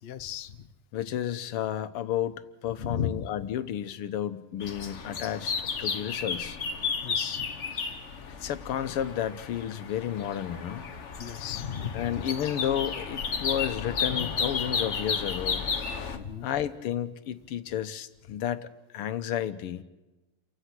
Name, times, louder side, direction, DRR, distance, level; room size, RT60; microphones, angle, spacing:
voice 1, 0.0-0.7 2.8-3.3 7.0-7.5 11.2-12.2 14.1-14.4 16.1-16.5, left 8 dB, 65° left, 10 dB, 0.6 m, -35 dB
voice 2, 0.9-6.6 8.3-10.9 11.9-15.7 16.4-18.7 18.9-19.8, left 10 dB, 85° left, 11 dB, 1.9 m, -32 dB
sound 1, 4.6-16.2, left 5 dB, 40° left, 1.1 m, -33 dB
29.5 x 16.5 x 6.0 m, 1.1 s
omnidirectional pair, 2.4 m